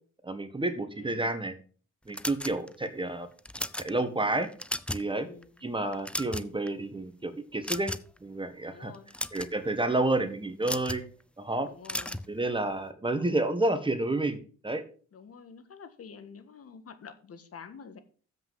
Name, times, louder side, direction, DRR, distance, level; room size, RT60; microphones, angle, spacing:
voice 1, 0.2-1.6 2.1-3.3 3.8-4.5 4.9-5.3 5.6-7.9 8.2-8.9 9.3-11.0 11.4-11.7 12.3-14.4 14.6-14.8, right 2 dB, 15° right, 9 dB, 1.4 m, -30 dB
voice 2, 0.9-1.3 5.1-5.6 8.6-9.1 11.6-12.2 15.1-18.0, left 6 dB, 50° left, 10 dB, 1.6 m, -48 dB
sound 1, 2.1-2.9 3.4-3.9 4.4-5.1 5.4-5.6 5.9-6.7 7.6-8.2 8.9-9.5 10.6-11.0 11.8-12.3, left 1 dB, 5° left, 0.5 m, -34 dB
7.6 x 5.9 x 7.6 m, 0.41 s
cardioid pair, 90°, 30 cm